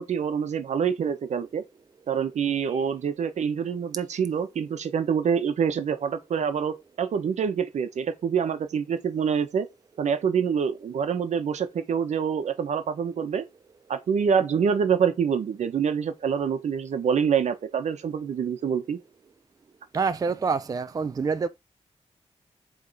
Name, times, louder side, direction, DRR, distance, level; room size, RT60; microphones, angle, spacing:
voice 1, 0.0-1.6 2.1-9.7 10.0-13.4 13.9-19.0, right 7 dB, 80° right, 1.1 m, -26 dB
voice 2, 19.9-21.5, right 5 dB, 30° right, 0.4 m, -26 dB
7.7 x 3.5 x 4.1 m
wide cardioid pair, 125°, 12 cm